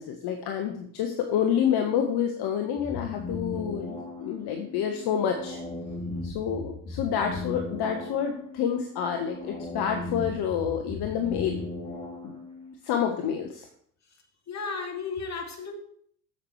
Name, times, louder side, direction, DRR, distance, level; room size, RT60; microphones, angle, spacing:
voice 1, 0.0-5.6 6.2-11.6 12.2-12.3 12.8-13.7, left 8 dB, 55° left, 4 dB, 1.4 m, -28 dB
sound 1, 2.8-12.7, left 3 dB, 15° left, 3.5 m, -37 dB
voice 2, 14.5-15.7, left 5 dB, 35° left, 3 dB, 2.5 m, -34 dB
8.8 x 7.4 x 4.7 m, 0.64 s
hypercardioid pair, 70°, 46 cm